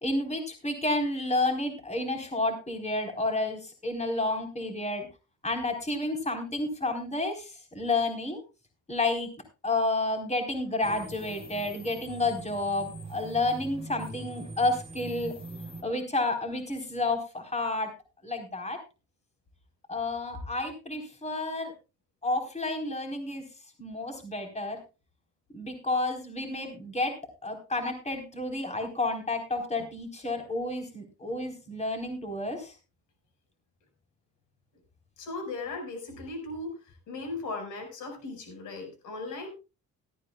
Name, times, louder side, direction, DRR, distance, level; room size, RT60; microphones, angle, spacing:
voice 1, 0.0-5.1 5.4-8.4 8.9-9.3 9.6-15.3 15.8-17.9 18.2-18.8 19.9-21.7 22.2-23.4 23.8-24.8 25.5-27.1 27.4-32.7, left 2 dB, 20° left, 4 dB, 4.2 m, -30 dB
sound 1, 10.8-15.8, right 2 dB, 20° right, 3.4 m, -42 dB
voice 2, 35.2-36.8 37.1-39.5, left 3 dB, 80° left, 6 dB, 5.6 m, -37 dB
17.5 x 13.5 x 2.4 m, 0.30 s
cardioid pair, 90°, 30 cm